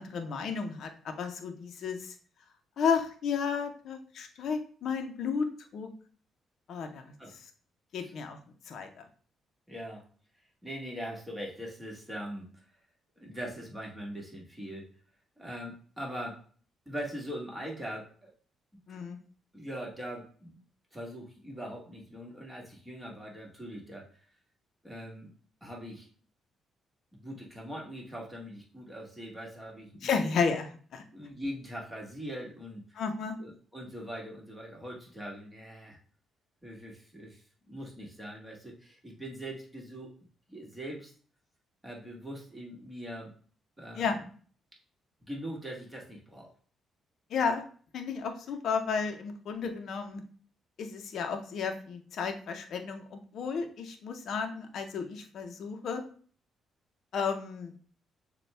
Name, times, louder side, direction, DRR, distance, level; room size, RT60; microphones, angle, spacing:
voice 1, 0.0-2.1 2.8-5.5 5.7-5.9 6.7-7.1 7.9-8.4 8.7-9.1 18.9-19.2 30.0-31.0 33.0-33.4 43.9-44.2 47.3-47.6 47.9-50.2 50.8-56.0 57.1-57.7, left 5 dB, 65° left, 5 dB, 0.6 m, -32 dB
voice 2, 9.7-10.0 10.6-12.6 13.2-14.9 15.4-16.4 16.8-18.3 19.5-20.6 20.9-24.1 24.8-25.3 25.6-26.1 27.1-30.1 31.1-33.0 33.4-36.0 36.6-41.1 41.8-43.3 43.8-44.3 45.2-46.5, equal, 10° right, -2 dB, 1.5 m, -41 dB
6.7 x 2.2 x 3.3 m, 0.44 s
cardioid pair, 90°, 0 cm